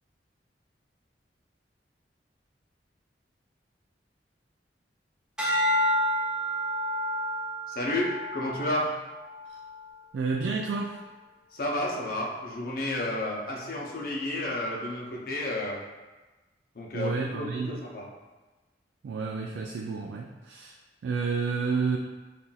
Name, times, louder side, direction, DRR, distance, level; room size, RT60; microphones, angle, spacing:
sound 1, 5.4-9.8 10.4-10.8, equal, 5° right, 1.1 m, -30 dB
voice 1, 7.7-9.0 11.5-15.8 16.7-18.1, left 1 dB, 55° left, -2 dB, 0.7 m, -31 dB
voice 2, 10.1-11.0 16.9-17.8 19.0-22.0, right 4 dB, 80° right, 0 dB, 0.3 m, -30 dB
5.6 x 2.5 x 2.3 m, 1.2 s
head